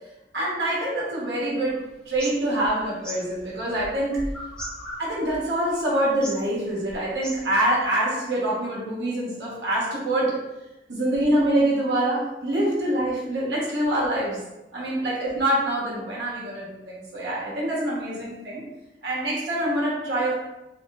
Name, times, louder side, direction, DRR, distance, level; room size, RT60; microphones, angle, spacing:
voice 1, 0.3-1.8 2.1-4.3 5.0-10.4 10.9-14.4 14.7-18.6 19.0-20.3, right 1 dB, 75° right, -6 dB, 0.9 m, -25 dB
sound 1, 1.7-7.8, equal, 5° left, 0.7 m, -38 dB
2.9 x 2.0 x 3.3 m, 0.98 s
head